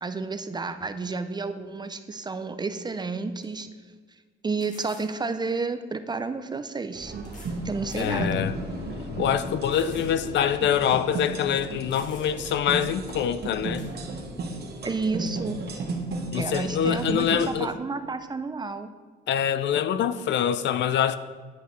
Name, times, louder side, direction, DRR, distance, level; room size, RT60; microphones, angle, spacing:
voice 1, 0.0-3.7 4.4-7.1 7.6-8.4 14.8-15.6 16.4-18.9, right 4 dB, 20° right, 10 dB, 0.4 m, -31 dB
sound 1, 2.8-2.9 3.4-3.5 4.6-5.1 6.3-6.4 7.2-7.6 7.9-8.2 8.7-8.8 9.7-10.2 10.5-10.6 11.5-11.6 11.9-12.5 13.8-13.9, left 2 dB, 40° left, 1.7 m, -50 dB
sound 2, 6.9-17.5, right 3 dB, 55° right, 1.1 m, -34 dB
voice 2, 8.0-8.6 9.1-13.8 16.3-17.7 19.3-21.2, left 9 dB, 65° left, 13 dB, 0.4 m, -25 dB
sound 3, 8.1-15.1, left 4 dB, 85° left, 0.8 m, -42 dB
10.5 x 4.9 x 3.1 m, 1.5 s
cardioid pair, 90°, 20 cm